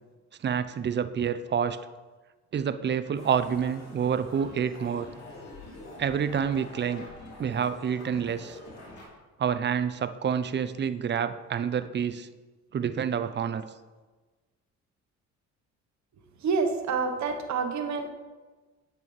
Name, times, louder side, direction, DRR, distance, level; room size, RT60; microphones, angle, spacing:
voice 1, 0.4-1.8 2.5-5.1 6.0-7.1 7.4-8.6 9.4-12.3 12.7-13.6, right 7 dB, 35° right, 12 dB, 0.5 m, -28 dB
sound 1, 3.1-9.1, left 2 dB, 60° left, 3.0 m, -46 dB
voice 2, 16.4-18.1, right 5 dB, 65° right, 6 dB, 1.1 m, -27 dB
9.0 x 8.1 x 3.2 m, 1.3 s
cardioid pair, 90°, 30 cm